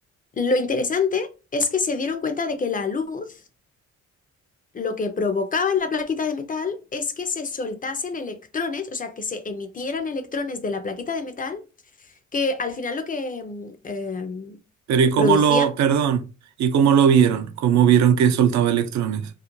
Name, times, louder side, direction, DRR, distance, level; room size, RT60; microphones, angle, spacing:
voice 1, 0.4-3.4 4.7-11.6 12.0-14.6 15.2-15.7, left 4 dB, 30° left, 0.4 m, -26 dB
voice 2, 14.9-16.2 16.6-19.3, right 8 dB, 65° right, 0.4 m, -18 dB
2.4 x 2.1 x 2.9 m
cardioid pair, 90°, 30 cm